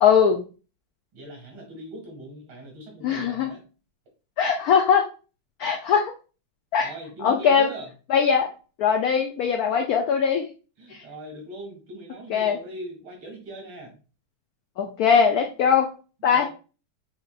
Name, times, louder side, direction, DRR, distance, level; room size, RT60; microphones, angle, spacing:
voice 1, 0.0-0.4 3.0-3.5 4.4-5.1 5.6-6.1 6.7-6.9 7.2-7.7 8.1-8.5 8.8-10.5 10.9-11.0 12.3-12.6 14.8-15.9 16.2-16.5, left 7 dB, 80° left, 4 dB, 0.8 m, -20 dB
voice 2, 1.1-3.6 6.8-7.9 10.8-14.0 16.2-16.5, right 1 dB, 80° right, 1 dB, 2.7 m, -40 dB
6.6 x 3.2 x 2.3 m, 0.34 s
omnidirectional pair, 2.2 m